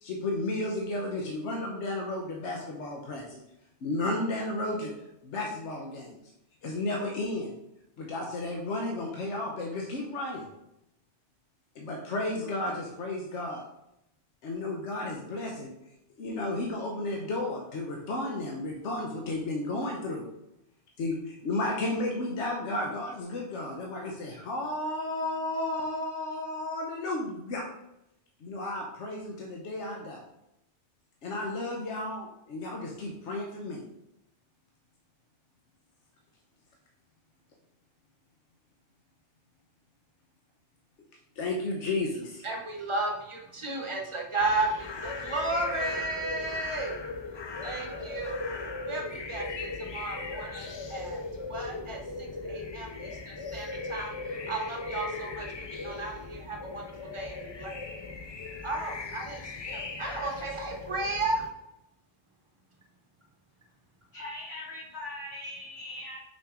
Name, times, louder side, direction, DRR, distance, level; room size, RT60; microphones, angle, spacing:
voice 1, 0.0-3.4 3.8-4.9 5.2-6.2 6.6-7.6 8.0-10.5 11.7-13.6 14.4-15.7 16.2-20.3 21.0-27.7 28.4-30.2 31.2-33.8 41.4-42.4, left 2 dB, 85° left, 0 dB, 1.2 m, -33 dB
voice 2, 42.4-46.9 47.6-48.4 48.8-51.2 51.5-57.3 57.6-57.7 58.6-61.5, right 2 dB, 25° right, 0 dB, 1.1 m, -34 dB
sound 1, 44.4-61.5, left 3 dB, 45° left, 0.3 m, -38 dB
voice 3, 64.1-66.2, left 1 dB, 65° left, -4 dB, 2.0 m, -40 dB
5.7 x 5.0 x 3.7 m, 0.85 s
omnidirectional pair, 1.2 m